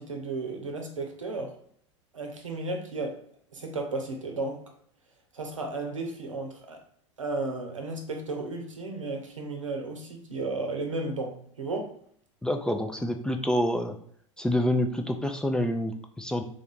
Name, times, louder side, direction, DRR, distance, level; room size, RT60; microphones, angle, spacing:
voice 1, 0.0-1.6 2.1-3.2 3.5-4.6 5.3-6.8 7.2-11.9, right 2 dB, 85° right, 0.7 m, -34 dB
voice 2, 12.4-14.0 14.4-16.4, left 1 dB, 5° left, 0.3 m, -27 dB
3.4 x 2.5 x 3.7 m
figure-of-eight pair, 85°, 16 cm